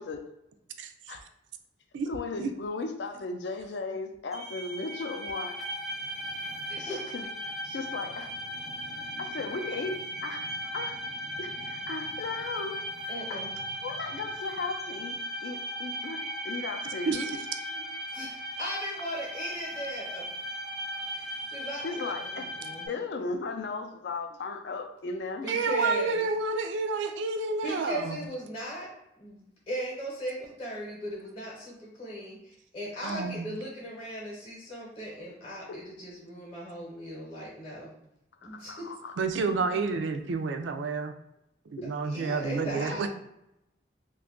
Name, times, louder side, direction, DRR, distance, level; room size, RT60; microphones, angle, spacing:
voice 1, 2.1-5.6 6.8-7.3 7.6-8.3 9.2-11.0 11.4-12.8 13.0-13.4 13.8-17.4 21.8-22.5 22.9-25.5 35.7-35.8 38.4-39.1, left 3 dB, 65° left, 4 dB, 0.4 m, -36 dB
sound 1, 4.3-22.9, equal, ahead, 0.5 m, -37 dB
voice 2, 6.7-7.1 13.1-13.5 17.7-17.8 18.1-20.3 21.1-22.9 25.4-26.2 27.6-37.9 38.4-38.9 39.7-39.9 42.1-43.1, equal, 30° left, -4 dB, 0.8 m, -38 dB
voice 3, 17.1-17.4 25.5-28.2 33.0-33.5 39.2-41.1 41.7-43.1, right 4 dB, 75° right, 8 dB, 0.3 m, -29 dB
2.6 x 2.3 x 3.6 m, 0.82 s
head